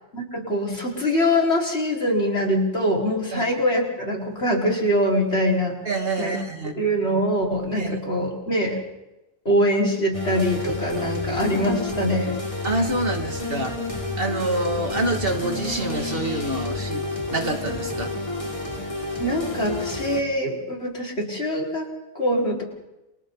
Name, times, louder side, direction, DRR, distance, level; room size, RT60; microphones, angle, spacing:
voice 1, 0.1-5.7 6.2-6.4 6.8-8.8 9.5-12.3 19.2-21.9 22.2-22.6, equal, 90° left, -1 dB, 5.5 m, -23 dB
voice 2, 5.8-6.7 7.8-8.0 12.6-13.8 14.2-17.0 17.3-18.1, right 2 dB, 60° right, 3 dB, 2.8 m, -26 dB
sound 1, 10.1-20.2, left 2 dB, 30° left, 3.6 m, -30 dB
30.0 x 26.0 x 4.2 m, 0.96 s
omnidirectional pair, 1.1 m